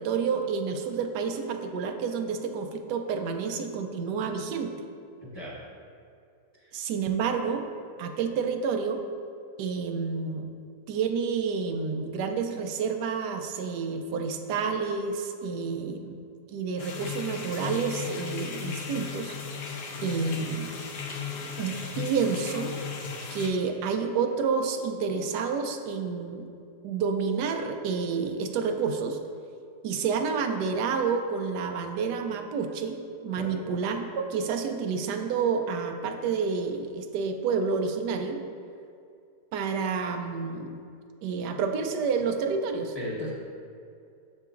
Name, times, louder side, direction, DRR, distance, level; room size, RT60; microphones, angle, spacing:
voice 1, 0.0-4.7 6.7-7.7 8.0-9.0 9.6-10.5 10.9-16.2 16.5-19.4 20.0-20.7 21.6-22.7 23.3-26.5 26.8-29.2 29.8-38.4 39.5-40.8 41.2-42.9, right 5 dB, 85° right, 5 dB, 1.2 m, -29 dB
voice 2, 5.2-5.6 6.6-6.7 33.3-33.6 42.9-43.3, equal, 20° left, -6 dB, 0.9 m, -37 dB
sound 1, 16.8-23.5, left 6 dB, 90° left, 1.3 m, -36 dB
7.3 x 6.6 x 2.5 m, 2.5 s
omnidirectional pair, 1.7 m